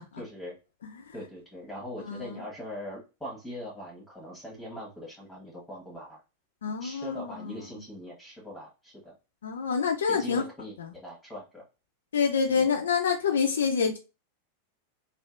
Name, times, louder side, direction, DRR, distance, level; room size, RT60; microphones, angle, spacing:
voice 1, 0.2-0.5 1.1-6.2 6.8-9.1 10.1-11.6 12.5-12.7, left 1 dB, 5° left, 1.3 m, -41 dB
voice 2, 2.1-2.4 6.6-7.6 9.4-10.4 10.8-10.9 12.1-14.0, left 6 dB, 65° left, 0.5 m, -27 dB
3.3 x 2.7 x 2.5 m
figure-of-eight pair, 90°, 0 cm